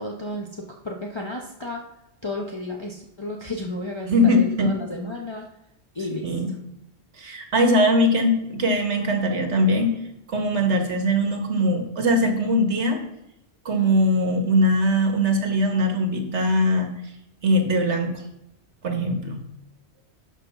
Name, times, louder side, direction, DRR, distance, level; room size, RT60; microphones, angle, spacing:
voice 1, 0.0-1.8 2.2-5.5 5.9-6.3, left 1 dB, 25° left, -1 dB, 1.0 m, -32 dB
voice 2, 4.1-4.8 6.2-6.5 7.2-10.0 10.3-13.0 13.7-16.9 17.4-18.1 18.8-19.4, equal, 85° right, 4 dB, 1.9 m, -21 dB
10.5 x 5.8 x 5.9 m, 0.84 s
omnidirectional pair, 1.1 m